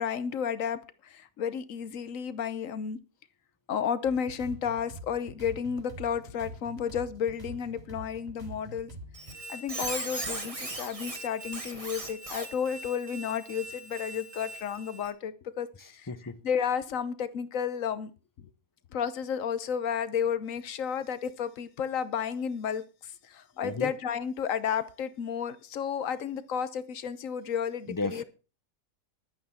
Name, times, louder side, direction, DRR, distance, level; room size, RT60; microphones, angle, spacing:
voice 1, 0.0-3.0 3.7-8.9 9.5-16.1 16.4-18.1 18.4-18.5 18.9-28.2, left 7 dB, 70° left, 1.2 m, -32 dB
sound 1, 4.0-9.3, equal, 45° right, 3.9 m, -45 dB
Squeak, 9.1-15.1, right 2 dB, 25° right, 1.7 m, -39 dB
voice 2, 15.8-16.4 23.6-23.9 27.9-28.2, left 3 dB, 20° left, 0.6 m, -34 dB
11.0 x 9.3 x 5.6 m
omnidirectional pair, 1.5 m